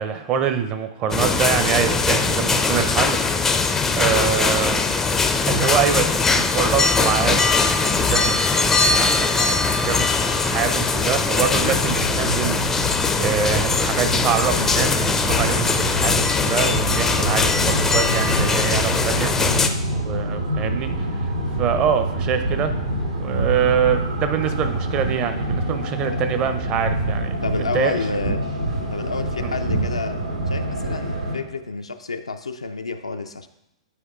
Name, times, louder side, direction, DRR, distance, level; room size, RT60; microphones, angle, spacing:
voice 1, 0.0-4.8 5.5-7.5 7.7-19.3 19.9-20.9 21.2-21.3 21.6-22.7 23.2-27.9 29.4-29.6, right 8 dB, 30° right, 8 dB, 0.6 m, -25 dB
sound 1, 1.1-19.7, left 4 dB, 10° left, 0.4 m, -21 dB
sound 2, 11.6-31.4, right 1 dB, 80° right, 1.4 m, -26 dB
voice 2, 19.3-19.8 27.4-28.5 28.9-30.2 30.5-33.5, left 3 dB, 80° left, 7 dB, 0.4 m, -29 dB
9.9 x 4.6 x 2.4 m, 0.85 s
figure-of-eight pair, 105°, 3 cm